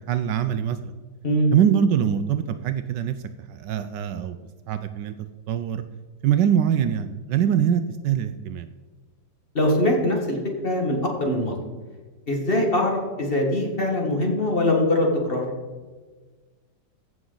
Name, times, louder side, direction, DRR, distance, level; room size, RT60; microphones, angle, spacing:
voice 1, 0.1-0.9 1.5-3.1 3.5-4.4 4.7-5.1 5.5-5.8 6.2-8.7, right 9 dB, 75° right, 10 dB, 1.1 m, -23 dB
voice 2, 9.5-10.4 10.6-11.6 12.3-15.4, left 1 dB, 30° left, 0 dB, 1.7 m, -22 dB
15.5 x 6.2 x 3.9 m, 1.4 s
omnidirectional pair, 2.1 m